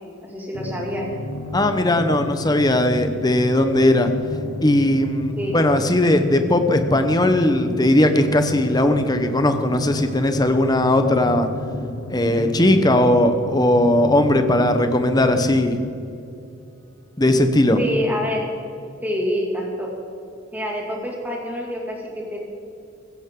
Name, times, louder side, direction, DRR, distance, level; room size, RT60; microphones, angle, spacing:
voice 1, 0.2-1.1 5.4-5.6 17.8-18.5 19.0-19.9 20.5-22.4, equal, 10° right, -2 dB, 2.3 m, -26 dB
sound 1, 0.5-15.6, left 2 dB, 90° left, 1.0 m, -32 dB
voice 2, 1.5-4.1 4.6-11.5 12.1-15.8 17.2-17.8, left 1 dB, 20° left, 7 dB, 0.9 m, -18 dB
16.0 x 15.5 x 3.8 m, 2.6 s
head